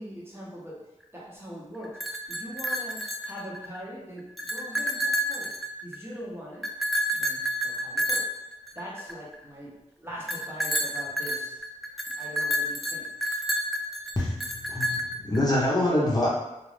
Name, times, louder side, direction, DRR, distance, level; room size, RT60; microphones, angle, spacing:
voice 1, 0.0-6.7 7.1-8.3 8.7-11.6 12.2-13.1, equal, 20° right, -5 dB, 0.9 m, -42 dB
sound 1, 1.8-3.8 4.2-6.1 6.6-9.3 10.3-15.4, equal, ahead, 0.3 m, -29 dB
voice 2, 14.2-16.3, left 1 dB, 30° left, -5 dB, 0.8 m, -25 dB
2.4 x 2.4 x 3.3 m, 0.95 s
cardioid pair, 45°, 13 cm